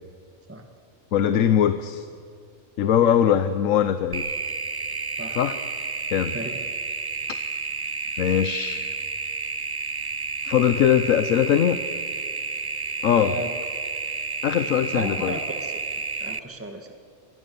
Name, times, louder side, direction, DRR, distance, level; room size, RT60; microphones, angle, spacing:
voice 1, 1.1-2.1 2.8-4.2 5.3-5.6 6.1-6.3 8.2-8.9 10.4-11.8 13.0-13.3 14.4-15.4, left 9 dB, 80° left, 11 dB, 1.2 m, -21 dB
sound 1, 4.1-16.4, right 4 dB, 30° right, 0.4 m, -31 dB
voice 2, 13.1-13.5 14.9-15.7 16.2-16.9, right 2 dB, 10° right, 5 dB, 1.6 m, -34 dB
25.0 x 19.5 x 6.9 m, 2.4 s
omnidirectional pair, 1.4 m